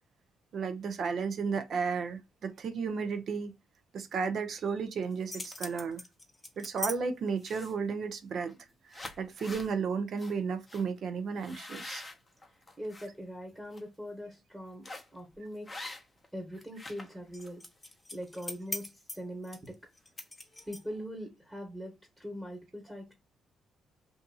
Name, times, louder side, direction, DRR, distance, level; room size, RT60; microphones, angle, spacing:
voice 1, 0.5-3.5 3.9-6.0 6.6-8.5 9.2-12.0, right 5 dB, 60° right, 0.6 m, -33 dB
sound 1, 5.0-7.0 7.4-7.9 8.5-8.6 8.9-9.7 10.2-10.3 10.7-10.8 11.4-13.1 13.5-13.8 14.8-15.2 15.7-16.3 16.5-21.0, left 2 dB, 20° left, 0.7 m, -42 dB
voice 2, 12.8-15.9 16.3-17.6 18.1-19.8 20.7-23.1, equal, 10° right, 1.0 m, -42 dB
2.6 x 2.6 x 2.2 m
cardioid pair, 90°, 0 cm